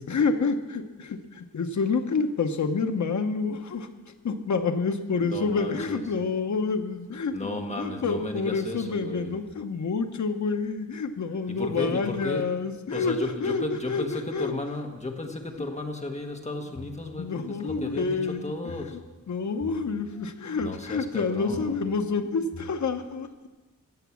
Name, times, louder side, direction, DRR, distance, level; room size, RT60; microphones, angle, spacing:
voice 1, 0.0-14.5 17.2-18.5 19.3-23.5, left 4 dB, 55° left, 7 dB, 0.9 m, -28 dB
voice 2, 5.2-6.0 7.3-9.4 11.5-12.5 12.9-19.0 20.6-21.8, left 2 dB, 20° left, 3 dB, 1.4 m, -34 dB
sound 1, 16.3-17.0 17.5-18.9 19.4-20.7 21.4-22.7, left 3 dB, 40° left, 5.2 m, -46 dB
15.5 x 7.3 x 7.1 m, 1.2 s
wide cardioid pair, 160°, 34 cm